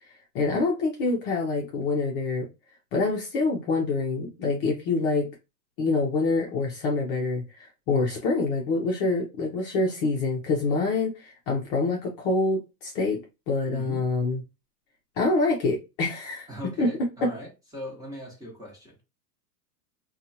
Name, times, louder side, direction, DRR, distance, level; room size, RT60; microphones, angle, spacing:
voice 1, 0.3-2.5 2.9-5.3 5.8-13.2 13.5-14.4 15.2-16.5 16.8-16.9 17.2-17.3, left 3 dB, 35° left, 0.7 m, -26 dB
voice 2, 16.5-19.0, equal, 5° right, 1.0 m, -40 dB
2.7 x 2.4 x 2.7 m
hypercardioid pair, 125°, 49 cm